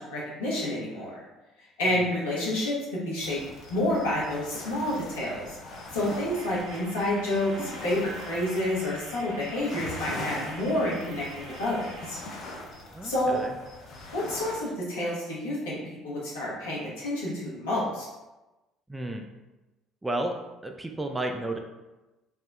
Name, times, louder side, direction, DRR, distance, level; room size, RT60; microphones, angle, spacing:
voice 1, 0.1-1.2 1.8-3.4 3.7-5.5 5.9-12.2 13.0-13.4 14.1-15.8 16.0-18.1, left 1 dB, 70° left, -6 dB, 0.8 m, -29 dB
sound 1, 3.2-14.6, left 2 dB, 50° left, 0.5 m, -41 dB
sound 2, 6.3-12.1, right 1 dB, 60° right, 0.7 m, -45 dB
voice 2, 12.9-13.6 18.9-19.3 20.0-20.4 20.6-21.6, right 1 dB, 10° right, 3 dB, 0.3 m, -32 dB
3.5 x 2.0 x 2.3 m, 1.1 s
figure-of-eight pair, 55°, 0 cm